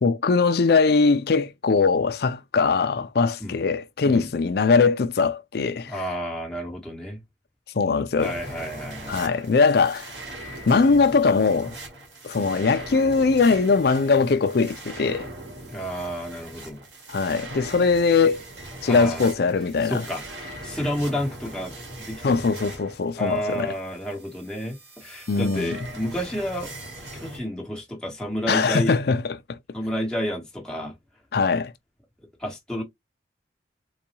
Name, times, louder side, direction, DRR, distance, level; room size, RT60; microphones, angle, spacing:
voice 1, 0.0-5.9 7.7-8.3 9.1-10.1 10.7-11.8 12.2-15.3 17.1-18.4 18.8-20.1 22.2-23.7 25.3-25.8 28.5-29.6 31.3-31.7, left 4 dB, 55° left, 0.4 m, -21 dB
voice 2, 5.9-7.2 8.2-9.3 12.3-12.6 15.7-16.8 18.9-19.3 19.8-20.2 20.6-21.7 22.0-22.4 23.2-26.7 27.1-28.9 29.7-30.9 32.4-32.8, equal, 5° left, 1.1 m, -30 dB
sound 1, 8.2-27.4, right 1 dB, 80° right, 1.7 m, -40 dB
3.9 x 2.3 x 2.9 m
head